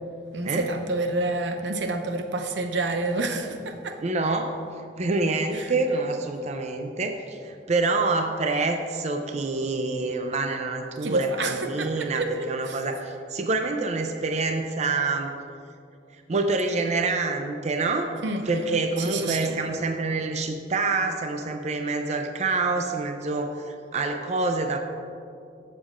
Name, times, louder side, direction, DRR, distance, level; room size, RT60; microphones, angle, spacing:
voice 1, 0.3-4.0 5.5-5.7 11.0-12.8 18.2-18.7 19.0-19.6, right 2 dB, 85° right, 5 dB, 0.7 m, -28 dB
voice 2, 4.0-4.6 5.0-15.3 16.3-18.1 18.5-24.8, right 3 dB, 40° right, 5 dB, 0.5 m, -27 dB
15.0 x 7.0 x 2.5 m, 2.5 s
head